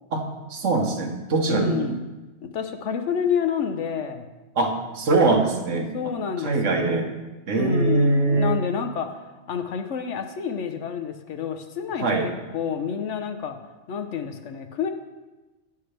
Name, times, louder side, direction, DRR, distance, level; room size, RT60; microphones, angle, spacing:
voice 1, 0.1-1.9 4.5-7.1 7.5-8.6 12.0-12.2, right 3 dB, 85° right, 3 dB, 1.5 m, -23 dB
voice 2, 1.5-2.0 2.4-4.3 5.9-7.1 7.5-9.2 9.5-13.6 13.9-14.9, left 7 dB, 75° left, 7 dB, 1.1 m, -29 dB
11.5 x 9.4 x 3.3 m, 1.1 s
omnidirectional pair, 1.3 m